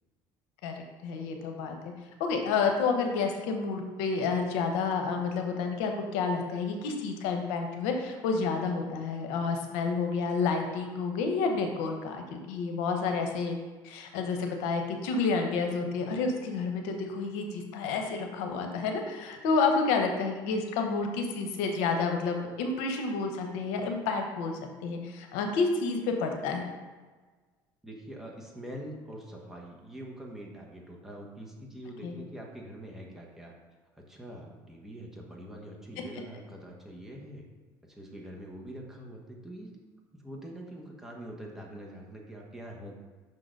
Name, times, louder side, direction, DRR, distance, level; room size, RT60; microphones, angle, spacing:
voice 1, 0.6-1.8 2.2-13.6 13.8-26.7 32.0-32.1, left 4 dB, 85° left, 4 dB, 0.8 m, -30 dB
voice 2, 27.8-33.5 34.0-37.4 37.8-39.7 40.1-43.0, right 1 dB, 5° right, -2 dB, 1.3 m, -44 dB
5.9 x 3.8 x 5.2 m, 1.4 s
cardioid pair, 110°, 9 cm